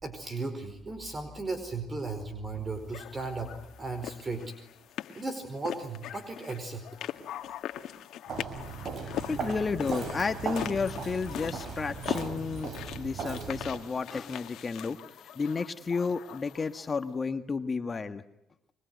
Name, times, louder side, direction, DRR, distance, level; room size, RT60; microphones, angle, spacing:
voice 1, 0.0-4.4 5.1-6.9, right 3 dB, 30° right, 9 dB, 4.8 m, -36 dB
sound 1, 2.9-17.0, left 11 dB, 75° left, 1.8 m, -41 dB
Walk footsteps, 8.3-13.8, right 5 dB, 60° right, 5.6 m, -37 dB
voice 2, 9.0-15.0 15.3-18.2, left 4 dB, 35° left, 9 dB, 1.6 m, -32 dB
26.0 x 24.0 x 9.4 m, 0.85 s
cardioid pair, 90°, 0 cm